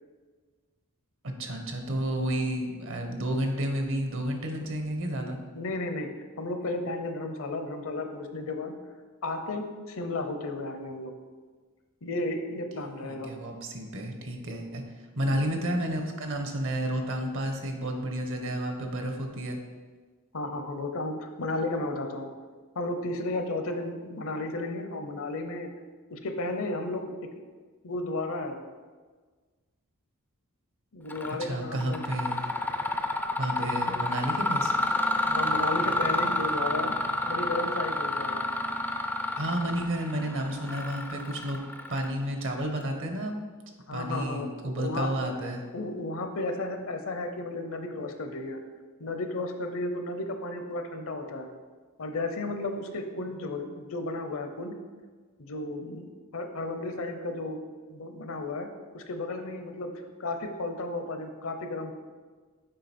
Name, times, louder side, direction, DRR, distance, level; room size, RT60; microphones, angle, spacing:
voice 1, 1.2-5.4 13.0-14.8 15.1-19.6 31.4-32.5 33.4-34.7 39.4-41.6 41.9-43.3 43.9-45.6, right 1 dB, 60° right, 4 dB, 1.0 m, -31 dB
voice 2, 5.5-6.1 6.4-8.7 9.2-11.1 12.0-13.3 15.3-15.5 20.3-22.3 22.7-25.7 26.1-27.1 27.8-28.6 30.9-32.0 35.2-36.9 37.3-38.4 43.9-44.5 44.8-45.1 45.7-48.6 49.0-51.5 52.0-54.7 55.4-57.6 57.9-58.7 58.9-59.9 60.2-61.9, left 2 dB, 65° left, 6 dB, 0.7 m, -33 dB
Mechanisms, 31.1-31.4 31.8-42.4, left 1 dB, 10° left, 0.4 m, -29 dB
7.6 x 4.9 x 4.4 m, 1.5 s
head